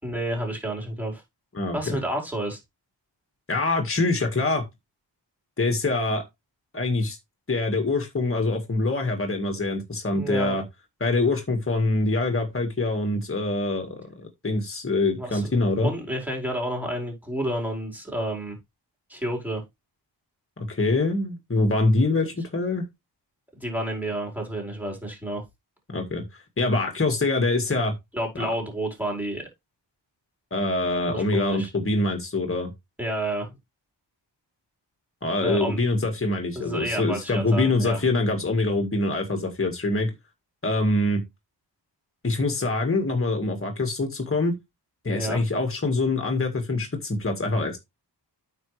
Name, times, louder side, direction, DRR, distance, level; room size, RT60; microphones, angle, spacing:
voice 1, 0.0-1.2 1.7-2.6 10.1-10.6 15.2-15.5 15.8-18.5 19.1-19.6 23.6-25.4 28.1-29.5 31.1-31.7 33.0-33.5 35.4-35.8 36.5-38.0 45.1-45.4, right 1 dB, 5° right, 4.8 m, -30 dB
voice 2, 1.5-2.0 3.5-4.6 5.6-6.2 6.7-7.2 7.5-10.6 11.0-15.9 20.6-22.9 25.9-27.9 28.4-28.5 30.5-32.7 35.2-40.1 40.6-41.2 42.2-44.6 45.0-47.8, left 2 dB, 30° left, 2.0 m, -24 dB
9.0 x 6.2 x 3.4 m
wide cardioid pair, 110°, 43 cm